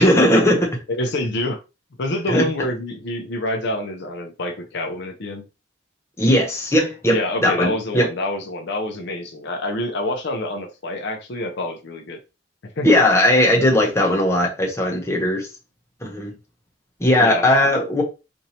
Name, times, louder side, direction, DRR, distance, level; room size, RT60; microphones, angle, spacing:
voice 1, 0.0-0.8 2.3-2.5 6.2-8.1 12.8-15.5 16.0-16.3 17.0-18.0, left 1 dB, 15° left, 0.8 m, -18 dB
voice 2, 0.9-1.6 2.0-5.4 7.1-12.2 12.6-12.9 17.2-17.4, left 1 dB, 60° left, 0.6 m, -27 dB
4.3 x 2.6 x 2.8 m
head